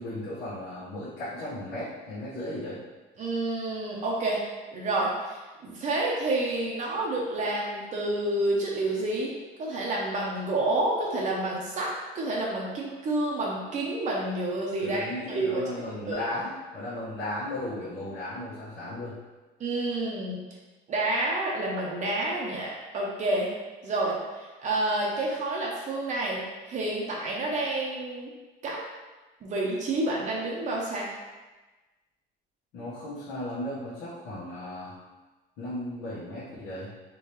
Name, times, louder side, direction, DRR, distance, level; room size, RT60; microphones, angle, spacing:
voice 1, 0.0-2.8 14.8-19.2 32.7-35.0 35.6-36.9, left 1 dB, 90° left, -10 dB, 1.3 m, -35 dB
voice 2, 3.2-4.4 4.7-9.3 9.6-15.6 15.9-16.2 19.6-20.4 20.9-23.5 23.8-26.4 26.7-28.3 28.6-28.8 29.4-31.1, right 2 dB, 45° right, -3 dB, 0.7 m, -29 dB
3.8 x 3.4 x 3.1 m, 1.2 s
cardioid pair, 135°, 18 cm